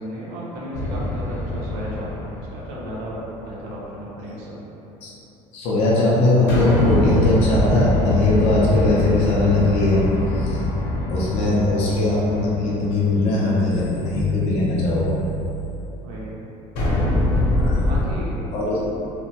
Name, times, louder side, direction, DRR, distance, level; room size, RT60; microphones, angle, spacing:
voice 1, 0.0-4.6 16.0-16.4 17.8-18.4, right 1 dB, 70° right, -5 dB, 0.7 m, -34 dB
sound 1, 0.7-3.3 6.5-13.7 16.8-18.0, left 1 dB, 85° left, 0.8 m, -23 dB
voice 2, 5.5-10.0 10.3-10.6 11.1-15.2 17.6-17.8 18.5-18.8, left 2 dB, 50° left, -5 dB, 0.5 m, -20 dB
2.9 x 2.1 x 2.8 m, 3.0 s
cardioid pair, 170°, 13 cm